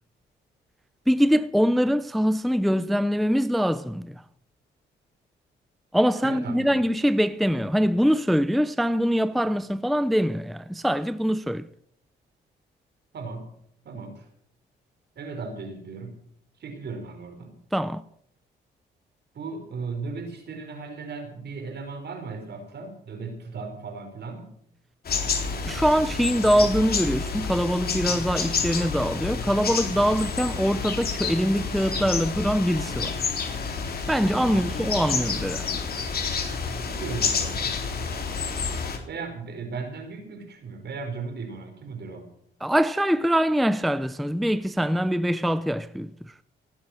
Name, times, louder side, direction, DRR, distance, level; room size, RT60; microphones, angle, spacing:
voice 1, 1.1-4.2 5.9-11.7 17.7-18.0 25.6-33.2 34.1-35.7 42.6-46.3, equal, ahead, 0.5 m, -23 dB
voice 2, 6.2-6.9 13.1-13.5 13.8-14.3 15.1-16.2 16.6-17.6 19.3-24.5 34.4-34.9 36.8-37.9 39.1-42.3, right 4 dB, 55° right, 5.0 m, -36 dB
sound 1, 25.0-39.0, left 5 dB, 50° left, 3.6 m, -29 dB
18.0 x 10.0 x 6.5 m
cardioid pair, 90°, 20 cm